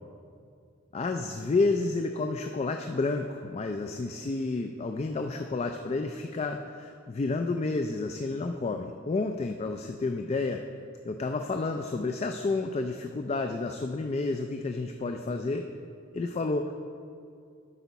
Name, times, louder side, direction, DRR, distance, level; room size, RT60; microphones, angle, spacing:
voice 1, 0.9-10.6 11.0-15.7 16.1-16.7, left 3 dB, 30° left, 5 dB, 0.3 m, -30 dB
12.5 x 5.6 x 4.0 m, 2.4 s
head